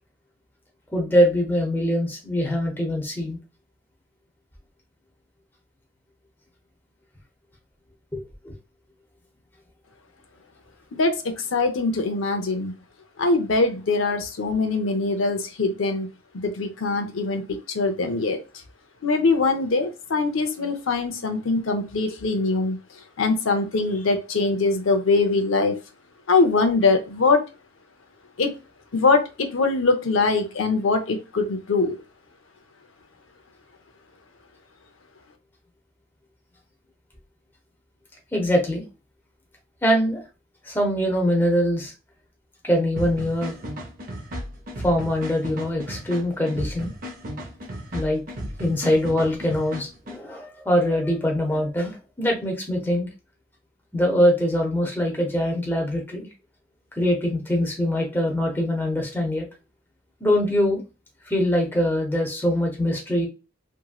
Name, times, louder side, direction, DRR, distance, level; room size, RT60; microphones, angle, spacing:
voice 1, 0.9-3.4 8.1-8.5 38.3-38.8 39.8-40.2 40.6-41.9 42.6-43.5 44.8-46.9 47.9-48.2 48.6-53.1 53.9-56.3 57.0-59.4 60.2-60.8 61.3-63.3, equal, 10° left, 0 dB, 0.7 m, -23 dB
voice 2, 10.9-12.7 13.2-16.1 16.3-17.4 17.7-18.4 19.0-22.8 23.2-25.7 26.3-27.4 28.4-28.5 28.9-32.0, left 3 dB, 75° left, 6 dB, 0.6 m, -22 dB
sound 1, 43.0-50.2, equal, 45° right, 0.6 m, -35 dB
2.9 x 2.7 x 2.3 m, 0.29 s
head